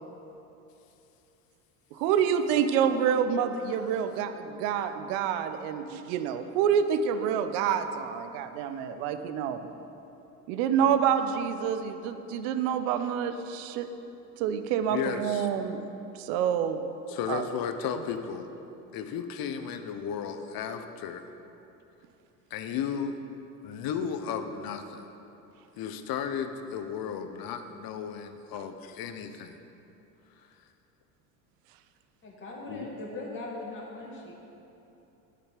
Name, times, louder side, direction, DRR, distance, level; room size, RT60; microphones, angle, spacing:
voice 1, 1.9-9.7 10.5-13.9 14.4-15.8 16.1-16.8 17.3-17.5, right 8 dB, 65° right, 9 dB, 0.9 m, -27 dB
voice 2, 14.9-15.5 17.1-18.5 18.9-21.3 22.5-23.2 23.6-25.1 25.8-29.6 32.7-32.9, left 7 dB, 50° left, 8 dB, 1.0 m, -34 dB
voice 3, 32.2-34.3, left 2 dB, 25° left, -5 dB, 2.1 m, -39 dB
10.0 x 8.9 x 5.1 m, 2.9 s
hypercardioid pair, 75°, 47 cm